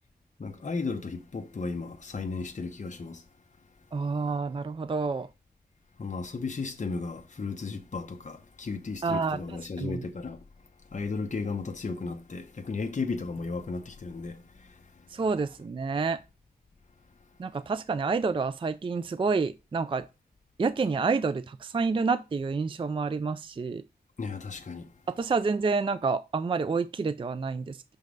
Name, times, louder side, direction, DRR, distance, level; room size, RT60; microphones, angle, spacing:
voice 1, 0.4-3.2 6.0-10.4 10.9-14.7 24.2-24.9, left 4 dB, 45° left, 0.9 m, -35 dB
voice 2, 3.9-5.3 9.0-10.0 15.1-16.2 17.4-20.0 20.6-23.8 25.1-27.8, right 4 dB, 30° right, 0.3 m, -28 dB
6.2 x 5.3 x 3.8 m
wide cardioid pair, 110°, 17 cm